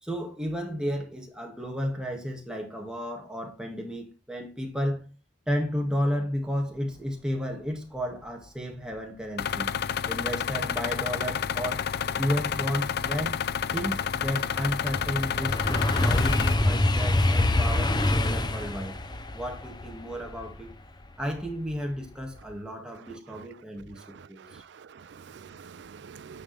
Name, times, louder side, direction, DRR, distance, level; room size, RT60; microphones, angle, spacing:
voice 1, 0.0-5.1 5.5-9.7 10.1-11.8 12.2-13.4 13.7-19.0 19.3-20.7 21.2-24.6, equal, 5° right, 2.1 m, -32 dB
sound 1, 9.4-16.5, left 8 dB, 55° left, 0.4 m, -30 dB
sound 2, 12.9-21.7 22.1-22.5, left 1 dB, 20° left, 0.7 m, -26 dB
voice 2, 23.1-23.5 24.0-26.4, right 6 dB, 60° right, 0.4 m, -47 dB
10.0 x 5.2 x 3.4 m
head